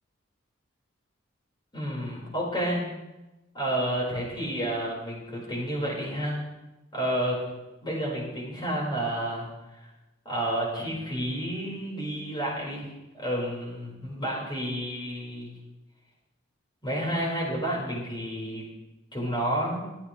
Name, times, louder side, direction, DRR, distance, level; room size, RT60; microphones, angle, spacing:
voice 1, 1.7-2.8 3.5-6.4 6.9-7.4 7.8-9.5 9.7-9.9 10.2-15.5 16.8-18.6 19.1-19.8, right 1 dB, 25° left, -4 dB, 4.8 m, -30 dB
23.0 x 8.7 x 3.3 m, 1.0 s
head